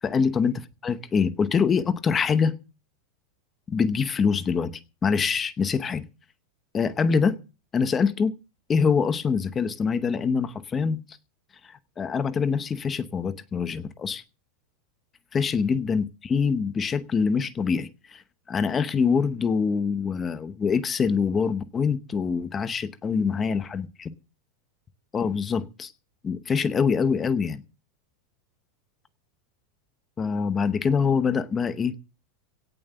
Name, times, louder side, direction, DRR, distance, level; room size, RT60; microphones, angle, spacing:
voice 1, 0.0-2.6 3.7-4.7 5.0-6.0 6.7-7.4 7.7-8.3 8.7-11.0 12.0-14.2 15.3-18.2 18.5-24.1 25.1-25.9 26.2-27.6 30.2-31.9, left 5 dB, 15° left, 0.8 m, -24 dB
17.5 x 7.4 x 7.0 m
supercardioid pair, 180°, 0 cm